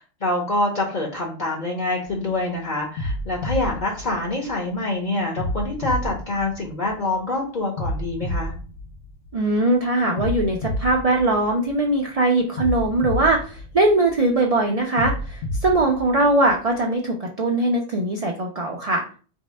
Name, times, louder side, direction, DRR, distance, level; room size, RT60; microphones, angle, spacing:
voice 1, 0.0-8.5, left 2 dB, 45° left, 0 dB, 0.8 m, -26 dB
sound 1, 2.0-2.4 3.0-4.8 5.4-7.2 7.8-9.6 10.2-12.0 12.6-14.4 15.0-16.8, left 1 dB, 80° left, 0.9 m, -30 dB
voice 2, 9.3-19.0, right 2 dB, 45° right, 0 dB, 0.5 m, -21 dB
3.1 x 2.7 x 4.2 m, 0.39 s
omnidirectional pair, 1.2 m